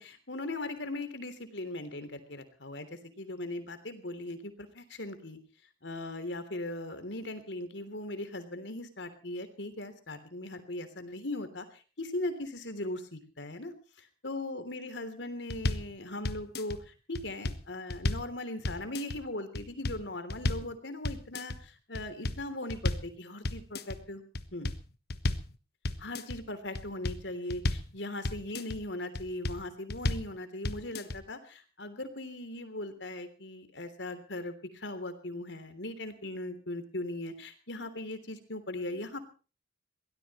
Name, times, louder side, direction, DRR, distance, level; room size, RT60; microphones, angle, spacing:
voice 1, 0.0-5.4 5.8-13.7 14.2-23.6 24.1-24.2 24.5-24.7 26.0-39.2, left 1 dB, 80° left, 10 dB, 3.3 m, -39 dB
sound 1, 15.5-15.9 16.2-16.8 17.2-18.3 18.6-19.2 19.6-20.0 20.3-20.7 21.0-21.6 21.9-23.1 23.4-24.0 24.3-25.5 25.8-26.4 26.8-27.9 28.2-28.8 29.2-29.6 29.9-30.3 30.6-31.2, left 2 dB, 60° left, 1.2 m, -33 dB
23.0 x 17.5 x 3.1 m, 0.36 s
head